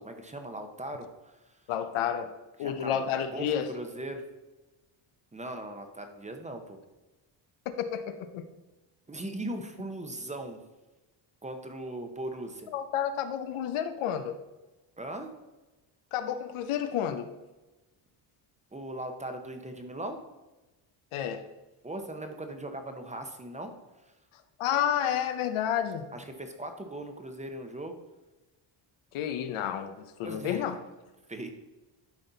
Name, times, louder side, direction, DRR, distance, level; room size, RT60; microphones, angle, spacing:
voice 1, 0.0-1.6 2.6-3.0 3.3-4.2 5.3-6.8 9.1-10.6 11.4-12.7 15.0-15.3 18.7-20.2 21.8-23.7 26.1-27.9 30.2-30.7 31.3-31.5, right 1 dB, 15° right, 6 dB, 0.8 m, -39 dB
voice 2, 1.7-2.3 2.6-3.7 7.7-8.5 12.7-14.4 16.1-17.3 21.1-21.5 24.6-26.1 29.1-30.8, left 9 dB, 80° left, 9 dB, 0.9 m, -30 dB
11.5 x 4.2 x 4.0 m, 1.1 s
cardioid pair, 115°, 49 cm